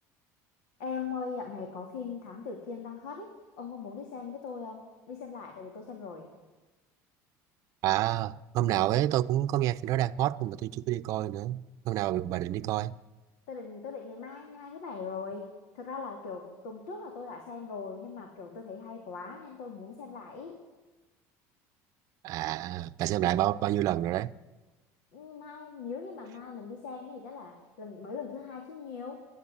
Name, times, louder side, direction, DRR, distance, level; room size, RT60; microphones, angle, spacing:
voice 1, 0.8-6.3 13.5-20.6 25.1-29.3, left 5 dB, 85° left, 3.2 m, -40 dB
voice 2, 7.8-12.9 22.2-24.3, right 14 dB, 50° right, 0.7 m, -28 dB
27.5 x 11.5 x 8.7 m
cardioid pair, 160°, 8 cm